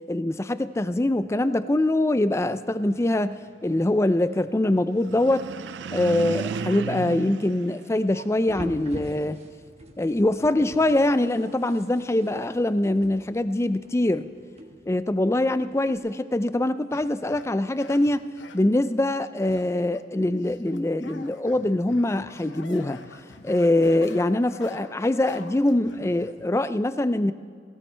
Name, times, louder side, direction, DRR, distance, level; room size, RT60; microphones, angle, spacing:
voice 1, 0.1-3.4 3.6-5.5 5.9-9.4 10.0-14.3 14.9-18.3 18.5-23.0 23.4-27.3, left 1 dB, 15° left, 13 dB, 0.4 m, -23 dB
sound 1, 4.9-8.5, right 5 dB, 70° right, 0.4 m, -34 dB
sound 2, 8.5-16.0, equal, 35° right, 1.2 m, -44 dB
sound 3, 16.9-18.7 19.4-20.1 20.4-26.5, left 3 dB, 85° left, 0.9 m, -47 dB
18.0 x 17.0 x 3.3 m, 2.2 s
head